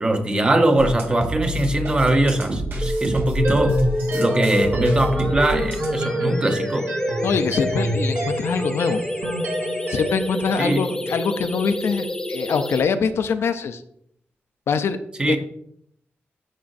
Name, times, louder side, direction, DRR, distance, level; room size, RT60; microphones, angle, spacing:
voice 1, 0.0-3.8 4.1-6.9 10.6-11.0 15.2-15.4, right 1 dB, 20° right, 6 dB, 0.8 m, -21 dB
sound 1, 0.8-6.0, equal, 60° right, 1.8 m, -29 dB
sound 2, 2.8-12.8, left 1 dB, 15° left, 0.6 m, -28 dB
sound 3, 3.4-10.3, right 1 dB, 75° right, 2.8 m, -28 dB
voice 2, 7.2-9.0 9.9-13.8 14.7-15.0 15.3-15.4, left 5 dB, 75° left, 9 dB, 0.5 m, -23 dB
12.5 x 5.0 x 2.6 m, 0.71 s
wide cardioid pair, 160°, 4 cm